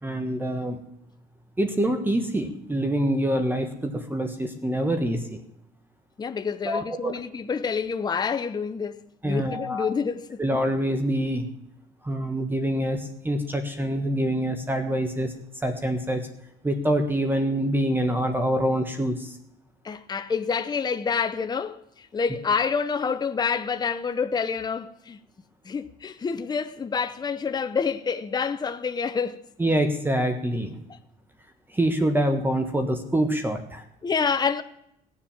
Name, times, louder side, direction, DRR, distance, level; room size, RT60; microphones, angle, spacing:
voice 1, 0.0-0.8 1.6-5.4 6.6-7.1 9.2-9.9 10.4-11.5 12.0-15.3 15.6-16.2 16.6-19.4 29.6-30.8 31.7-33.8, right 1 dB, 10° right, 1.4 m, -25 dB
voice 2, 6.2-10.4 19.8-25.2 25.6-29.4 34.0-34.6, left 6 dB, 25° left, 0.7 m, -28 dB
18.0 x 7.3 x 7.3 m
cardioid pair, 110°, 17 cm